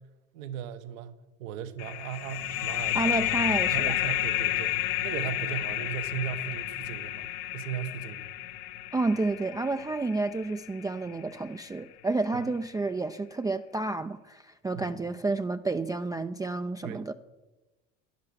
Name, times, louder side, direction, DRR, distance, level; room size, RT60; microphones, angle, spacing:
voice 1, 0.3-3.1 3.7-4.7 5.0-7.2 7.5-8.3 14.7-14.9 16.8-17.0, right 10 dB, 75° right, 1.2 m, -37 dB
sound 1, 1.8-11.1, left 14 dB, 60° left, 1.0 m, -31 dB
voice 2, 2.9-4.0 8.9-17.1, right 3 dB, 10° right, 0.4 m, -30 dB
11.5 x 11.0 x 7.0 m
hypercardioid pair, 80°, 40 cm